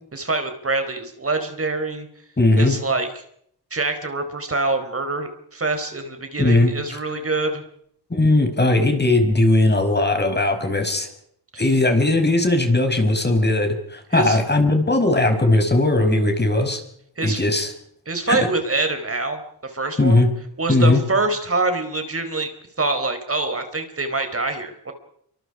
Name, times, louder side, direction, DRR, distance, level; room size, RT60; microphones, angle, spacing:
voice 1, 0.1-2.1 2.6-3.2 3.7-7.6 11.5-11.6 14.1-14.4 17.2-17.5 18.1-20.3 20.6-22.5 22.8-24.9, right 3 dB, 35° right, 7 dB, 4.5 m, -25 dB
voice 2, 2.4-2.8 6.4-7.0 8.1-11.1 11.6-16.8 17.2-17.7 18.3-18.5 20.0-20.3 20.7-21.0, left 2 dB, 25° left, 6 dB, 5.4 m, -18 dB
28.0 x 25.0 x 5.0 m, 0.70 s
wide cardioid pair, 100°, 41 cm